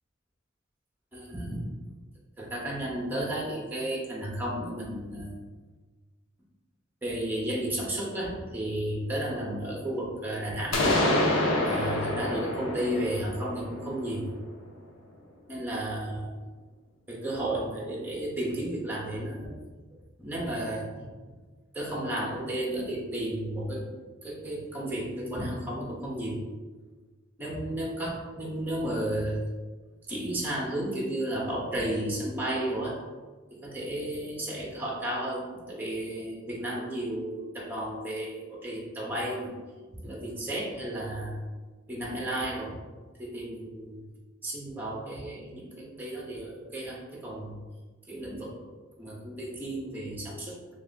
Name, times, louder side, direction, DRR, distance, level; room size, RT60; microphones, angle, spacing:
voice 1, 1.1-1.6 2.4-5.3 7.0-10.8 11.6-14.3 15.5-16.4 17.1-19.6 20.2-20.9 21.7-23.8 24.2-26.4 27.4-29.5 30.1-33.0 33.5-39.5 39.9-41.4 41.9-42.8 43.2-44.0 44.4-47.6 48.1-48.5 49.0-50.6, right 1 dB, 10° right, -4 dB, 0.8 m, -33 dB
sound 1, 10.7-14.5, left 1 dB, 80° left, 0.7 m, -27 dB
3.1 x 2.8 x 4.0 m, 1.3 s
head